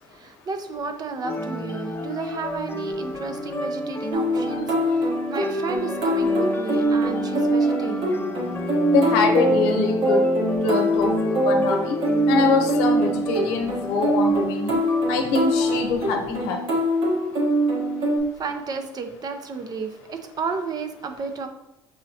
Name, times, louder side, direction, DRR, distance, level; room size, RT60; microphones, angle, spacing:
voice 1, 0.1-8.3 8.5-8.6 18.4-21.5, right 4 dB, 40° right, 7 dB, 0.6 m, -32 dB
sound 1, 1.2-15.8, left 1 dB, 25° left, 0.6 m, -32 dB
sound 2, 4.1-18.2, right 1 dB, 70° right, 1.2 m, -23 dB
voice 2, 8.9-10.3 10.6-12.0 12.3-14.8 15.1-16.8, left 4 dB, 80° left, 3 dB, 0.8 m, -24 dB
6.2 x 2.9 x 2.8 m, 0.90 s
supercardioid pair, 75°, 10 cm